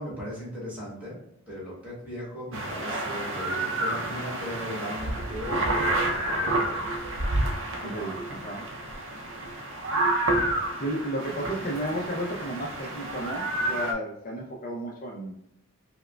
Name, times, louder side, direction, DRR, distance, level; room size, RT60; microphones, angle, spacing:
voice 1, 0.0-7.1 7.8-8.2, equal, 5° right, -7 dB, 1.4 m, -38 dB
sound 1, 2.5-13.9, right 1 dB, 55° right, 0.5 m, -29 dB
voice 2, 7.8-8.7 10.8-15.4, right 1 dB, 40° left, -2 dB, 0.5 m, -33 dB
4.7 x 2.1 x 2.2 m, 0.80 s
head